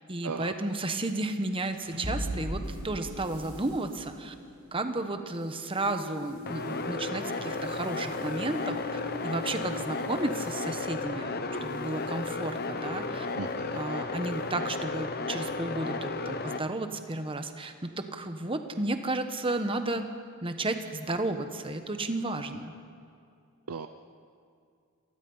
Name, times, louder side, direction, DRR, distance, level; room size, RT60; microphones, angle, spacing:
voice 1, 0.1-4.3 4.7-11.3 11.6-13.3 13.7-20.1 20.4-22.7, right 2 dB, 25° right, 7 dB, 1.1 m, -33 dB
sound 1, 1.5-12.0, equal, 50° right, 5.1 m, -41 dB
sound 2, 6.5-16.6, left 3 dB, 45° left, 1.0 m, -34 dB
voice 2, 13.4-13.8 23.7-23.9, right 5 dB, 80° right, 8 dB, 0.6 m, -36 dB
27.0 x 19.0 x 5.6 m, 2.4 s
head